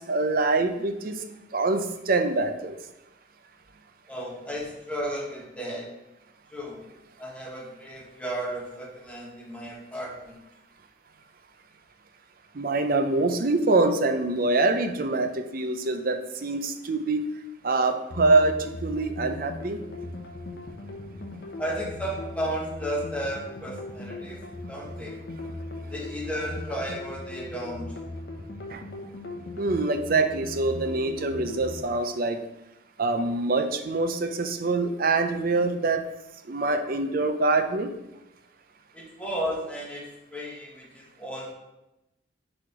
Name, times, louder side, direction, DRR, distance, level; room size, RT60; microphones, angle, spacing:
voice 1, 0.1-1.2 1.5-2.8 12.5-17.3 17.6-19.8 28.7-28.8 29.6-32.4 33.0-36.0 36.5-37.9, right 3 dB, 50° right, 7 dB, 0.5 m, -25 dB
voice 2, 4.1-5.9 6.5-6.8 7.2-10.4 20.6-20.7 21.6-24.4 24.7-25.1 25.9-27.9 38.9-41.5, equal, 5° left, -3 dB, 1.2 m, -34 dB
sound 1, 18.1-31.8, left 2 dB, 55° left, 0.8 m, -38 dB
4.6 x 4.3 x 4.9 m, 0.93 s
head